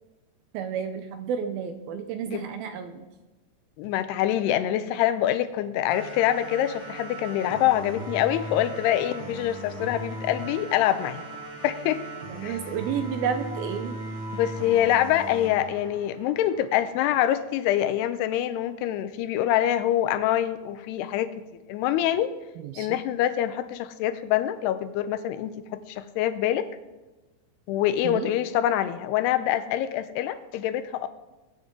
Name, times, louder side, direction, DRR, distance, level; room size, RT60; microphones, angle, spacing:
voice 1, 0.5-3.1 12.3-14.0 22.6-23.0 28.0-28.3, right 7 dB, 75° right, 8 dB, 2.3 m, -31 dB
voice 2, 3.8-11.2 11.6-12.1 12.4-12.6 14.3-21.3 21.7-22.3 22.8-26.7 27.7-31.1, left 12 dB, 85° left, 11 dB, 2.6 m, -25 dB
sound 1, 5.9-16.9, right 1 dB, 40° right, 1.8 m, -38 dB
21.5 x 9.5 x 3.8 m, 1.1 s
omnidirectional pair, 5.0 m